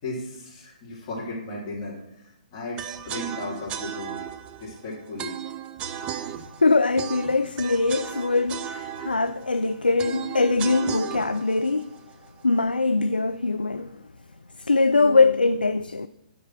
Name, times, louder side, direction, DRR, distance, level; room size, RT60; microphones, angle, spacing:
voice 1, 0.0-4.2 4.6-5.3, left 2 dB, 35° left, 3.2 m, -35 dB
sound 1, 2.8-12.8, right 9 dB, 20° right, 0.4 m, -36 dB
voice 2, 6.6-11.9 12.4-14.0 14.6-16.1, left 3 dB, 85° left, 0.3 m, -22 dB
12.5 x 4.7 x 4.5 m
figure-of-eight pair, 130°, 5 cm